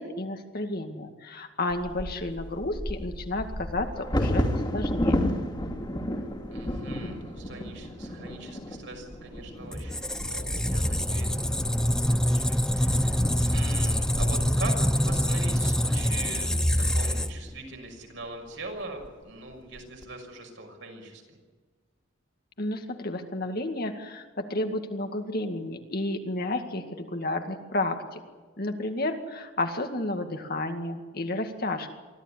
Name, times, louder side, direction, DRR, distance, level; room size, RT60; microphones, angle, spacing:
voice 1, 0.0-5.3 22.6-28.2 28.6-31.9, left 2 dB, 50° left, 5 dB, 2.1 m, -31 dB
Bird vocalization bird call bird song / Wind / Thunder, 1.7-17.6 18.2-18.3 18.7-19.1 19.5-20.0, equal, 25° left, 2.7 m, -33 dB
voice 2, 6.5-21.2, right 2 dB, 70° right, 2 dB, 6.1 m, -42 dB
Squeak, 9.7-17.6, equal, 5° left, 0.7 m, -25 dB
24.5 x 15.0 x 9.9 m, 1.4 s
head